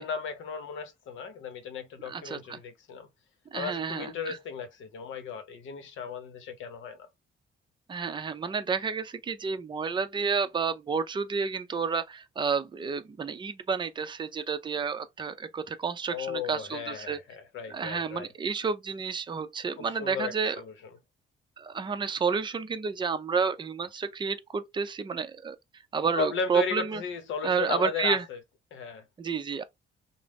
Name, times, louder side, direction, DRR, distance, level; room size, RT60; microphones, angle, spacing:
voice 1, 0.0-3.1 3.5-7.1 16.1-18.3 19.8-20.7 26.1-28.4 28.7-29.0, left 6 dB, 80° left, 0.8 m, -35 dB
voice 2, 2.1-2.6 3.5-4.4 7.9-17.2 17.7-20.6 21.6-27.0 27.4-28.2 29.2-29.6, right 5 dB, 25° right, 0.4 m, -30 dB
2.4 x 2.0 x 3.3 m
cardioid pair, 90°, 20 cm